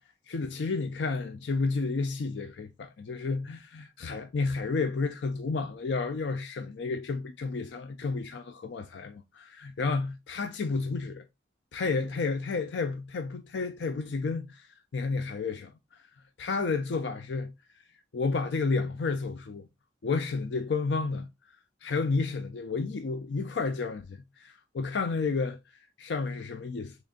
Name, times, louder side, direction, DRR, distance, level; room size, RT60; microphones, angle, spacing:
voice 1, 0.3-11.2 11.7-15.7 16.4-17.5 18.1-19.7 20.0-21.3 21.8-25.6 26.0-27.0, left 4 dB, 75° left, 0.4 m, -31 dB
3.7 x 3.3 x 2.4 m
head